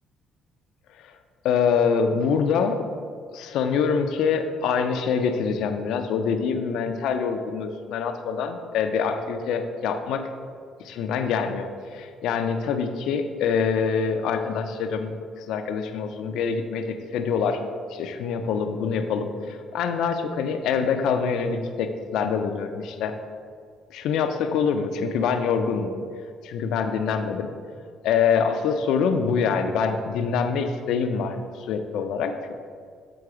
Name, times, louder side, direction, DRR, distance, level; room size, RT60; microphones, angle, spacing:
voice 1, 1.4-2.8 3.3-10.2 10.8-17.6 17.9-23.1 23.9-25.9 26.4-27.5 28.0-32.5, left 6 dB, 80° left, 7 dB, 0.5 m, -25 dB
7.8 x 3.9 x 4.8 m, 2.1 s
cardioid pair, 125°, 0 cm